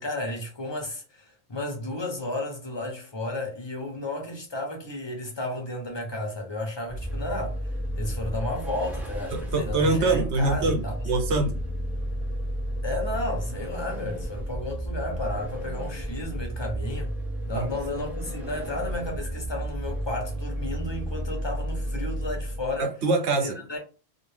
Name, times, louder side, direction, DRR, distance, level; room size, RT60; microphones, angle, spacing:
voice 1, 0.0-7.6 8.0-11.1 12.8-17.1 17.5-22.9 23.4-23.8, left 1 dB, 25° left, 0.9 m, -33 dB
Vehicle, 6.9-22.8, equal, ahead, 0.5 m, -32 dB
voice 2, 9.3-11.6 17.5-17.7 22.8-23.6, right 3 dB, 85° right, 1.1 m, -24 dB
2.7 x 2.6 x 3.2 m
omnidirectional pair, 1.1 m